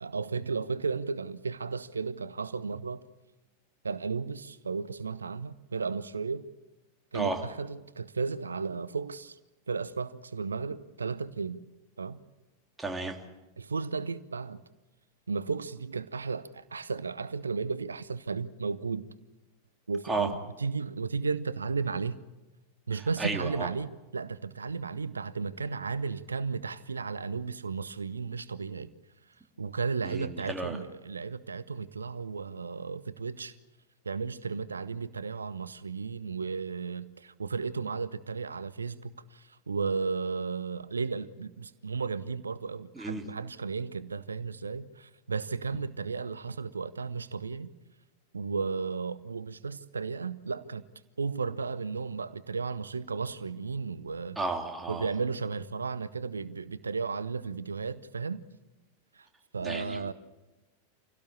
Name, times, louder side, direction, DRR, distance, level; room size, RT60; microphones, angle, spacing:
voice 1, 0.0-3.0 3.8-6.5 7.1-9.4 9.7-11.6 12.0-12.2 13.6-14.6 15.3-19.1 19.9-22.2 22.9-28.9 29.6-33.6 34.0-47.7 48.3-50.8 51.2-54.4 54.9-58.4 59.1-59.3 59.5-60.1, right 4 dB, 75° right, 0.7 m, -34 dB
voice 2, 12.8-13.2 20.0-20.3 23.2-23.7 30.0-30.8 42.9-43.3 54.4-55.1 59.6-60.1, right 3 dB, 10° right, 2.9 m, -33 dB
26.5 x 17.0 x 8.6 m
figure-of-eight pair, 90°, 0 cm